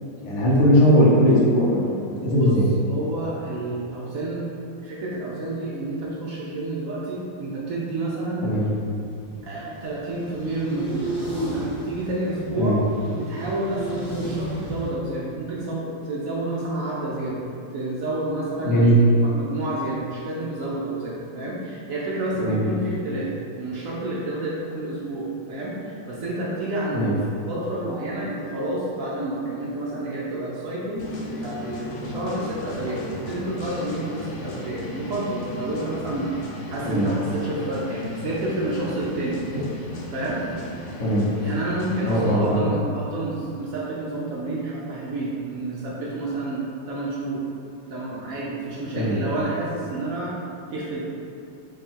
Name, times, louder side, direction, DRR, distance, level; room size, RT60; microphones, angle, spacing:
voice 1, 0.2-1.9 2.2-2.7 8.4-8.6 12.6-12.8 18.6-19.0 22.4-22.6 26.9-27.1 36.9-37.1 41.0-41.3 42.0-42.7 49.0-49.2, equal, 60° left, -6 dB, 0.8 m, -19 dB
voice 2, 2.9-4.5 4.8-8.5 9.4-11.1 11.4-12.8 13.1-17.4 17.7-23.3 23.5-27.1 27.5-39.4 40.1-40.4 41.4-47.4 47.9-50.3 50.7-51.0, right 1 dB, 75° right, -6 dB, 0.7 m, -29 dB
sound 1, 8.5-14.9, right 1 dB, 5° left, 0.8 m, -33 dB
sound 2, 31.0-42.3, left 1 dB, 85° left, 1.3 m, -36 dB
3.6 x 2.3 x 4.2 m, 2.5 s
omnidirectional pair, 1.9 m